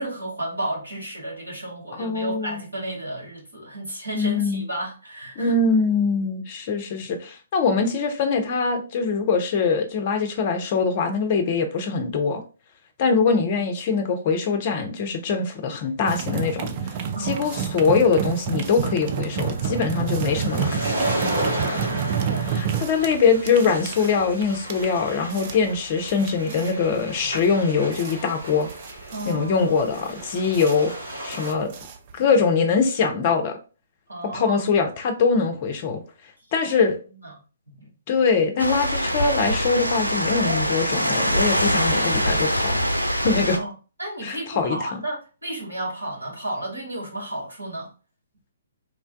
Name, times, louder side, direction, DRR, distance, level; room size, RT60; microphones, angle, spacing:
voice 1, 0.0-5.6 13.3-13.7 17.1-17.7 21.5-22.5 29.1-29.7 34.1-34.8 37.2-37.3 37.7-37.9 43.5-43.7 44.0-47.9, right 1 dB, 80° right, 1.4 m, -33 dB
voice 2, 2.0-2.6 4.1-4.6 5.4-12.4 13.0-16.7 17.2-20.9 21.6-21.9 22.5-28.7 29.3-30.9 31.2-31.7 32.1-33.6 34.3-36.0 36.5-37.0 38.1-42.8 43.2-43.6 44.2-45.0, left 5 dB, 35° left, 0.5 m, -23 dB
sound 1, 16.1-32.4, right 7 dB, 35° right, 0.3 m, -30 dB
sound 2, 17.3-31.5, right 1 dB, 60° right, 1.4 m, -34 dB
sound 3, 38.6-43.6, equal, 90° left, 0.4 m, -23 dB
3.1 x 2.2 x 2.5 m
figure-of-eight pair, 125°, 0 cm